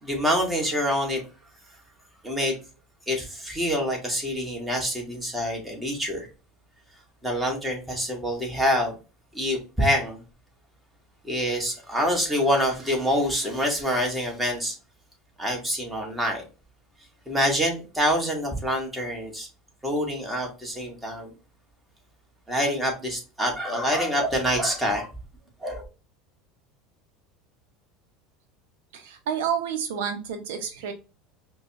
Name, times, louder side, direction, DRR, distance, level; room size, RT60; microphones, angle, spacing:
voice 1, 0.0-1.2 2.2-2.5 3.1-6.3 7.2-9.0 9.3-10.2 11.2-14.7 15.4-16.4 17.2-19.5 19.8-21.3 22.5-25.1 25.6-25.8, equal, 10° right, 0 dB, 1.6 m, -26 dB
voice 2, 28.9-30.9, right 8 dB, 80° right, 6 dB, 0.7 m, -29 dB
5.1 x 2.3 x 2.8 m, 0.32 s
supercardioid pair, 110°, 0 cm